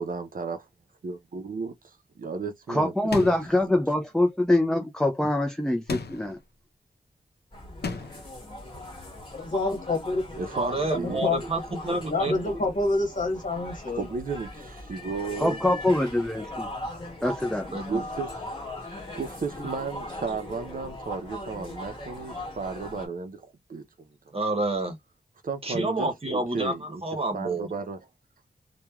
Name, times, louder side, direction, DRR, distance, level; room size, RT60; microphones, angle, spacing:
voice 1, 0.0-0.6 1.0-2.9 3.2-3.3 3.6-3.7 10.4-11.2 14.0-15.6 17.9-18.4 18.8-24.1 25.4-27.0 27.3-28.0, right 4 dB, 55° right, 0.5 m, -34 dB
voice 2, 2.7-6.4 15.4-16.7 17.2-17.7, left 1 dB, 5° left, 0.4 m, -24 dB
sound 1, 3.1-3.6 5.9-6.4 7.8-8.3, left 4 dB, 80° left, 0.6 m, -34 dB
sound 2, 7.5-23.1, left 1 dB, 30° left, 1.5 m, -39 dB
voice 3, 9.3-10.3 11.2-11.4 12.1-14.1 16.9-17.0, left 2 dB, 55° left, 1.2 m, -27 dB
voice 4, 10.5-12.6 17.7-18.0 24.3-25.0 25.6-27.7, right 2 dB, 35° right, 0.9 m, -29 dB
3.0 x 2.2 x 2.3 m
wide cardioid pair, 85°, 17 cm